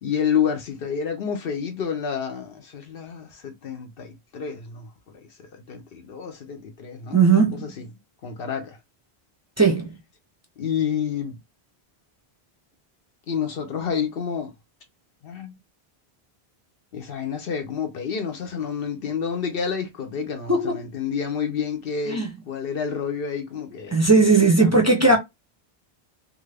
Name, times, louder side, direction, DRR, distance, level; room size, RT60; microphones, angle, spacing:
voice 1, 0.0-4.9 5.4-7.9 8.2-8.8 10.6-11.4 13.3-14.5 15.2-15.5 16.9-24.2 24.6-25.2, left 7 dB, 70° left, 0.8 m, -29 dB
voice 2, 7.1-7.6 9.6-9.9 20.5-20.8 22.1-22.3 23.9-25.2, right 3 dB, 20° right, 0.4 m, -17 dB
2.6 x 2.4 x 3.2 m
omnidirectional pair, 1.0 m